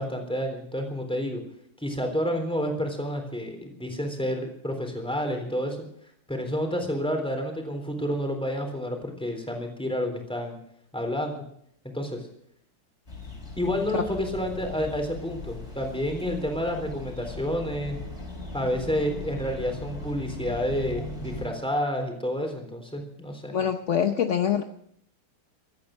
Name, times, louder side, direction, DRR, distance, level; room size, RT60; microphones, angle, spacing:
voice 1, 0.0-1.4 1.8-5.8 6.3-10.6 10.9-11.4 11.9-12.2 13.6-18.0 18.5-23.5, equal, ahead, 3 dB, 3.5 m, -29 dB
sound 1, 13.1-21.5, left 2 dB, 30° left, 4.7 m, -38 dB
voice 2, 23.5-24.6, left 8 dB, 60° left, 6 dB, 0.8 m, -24 dB
16.5 x 13.5 x 6.5 m, 0.70 s
omnidirectional pair, 2.2 m